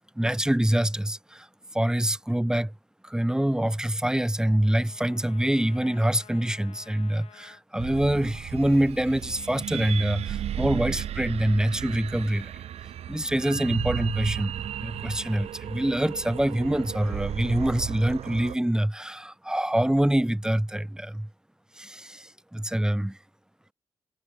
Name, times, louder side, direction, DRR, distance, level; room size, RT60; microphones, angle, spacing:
voice 1, 0.2-1.5 1.7-2.7 3.0-12.5 13.1-21.3 21.8-23.2, right 1 dB, 5° right, 0.9 m, -25 dB
Trumpet, 3.3-7.6, left 8 dB, 75° left, 3.8 m, -54 dB
sound 1, 7.8-18.6, right 11 dB, 85° right, 1.4 m, -34 dB
cardioid pair, 55°, 10 cm